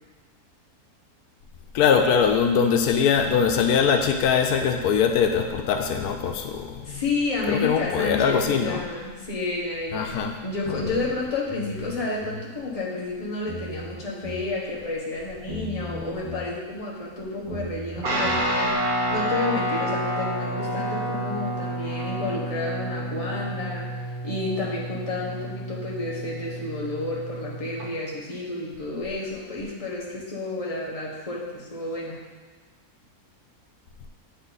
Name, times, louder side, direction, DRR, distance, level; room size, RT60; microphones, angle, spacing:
voice 1, 1.7-7.0 7.5-8.8 9.9-10.3 10.7-10.9, left 7 dB, 90° left, 5 dB, 1.1 m, -22 dB
voice 2, 6.8-32.2, left 2 dB, 25° left, -4 dB, 1.2 m, -31 dB
sound 1, 11.5-12.5 13.5-14.5 15.5-16.5 17.5-18.4, left 1 dB, 20° right, 1.6 m, -37 dB
Guitar, 18.0-27.9, right 1 dB, 75° right, 1.7 m, -29 dB
8.5 x 4.0 x 4.0 m, 1.4 s
omnidirectional pair, 1.6 m